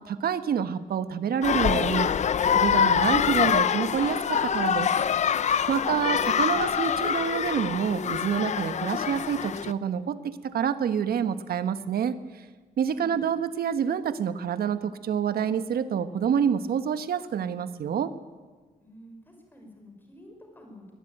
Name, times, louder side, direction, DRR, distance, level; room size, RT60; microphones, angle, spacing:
voice 1, 0.1-2.1 2.5-4.9 5.7-12.1 12.8-18.1, right 8 dB, 85° right, 12 dB, 1.3 m, -27 dB
sound 1, 1.4-9.7, left 8 dB, 50° left, 0.7 m, -25 dB
voice 2, 5.6-6.9 12.9-13.3 18.8-20.9, equal, 15° left, 3 dB, 5.6 m, -49 dB
22.5 x 20.0 x 9.2 m, 1.4 s
wide cardioid pair, 170°, 15 cm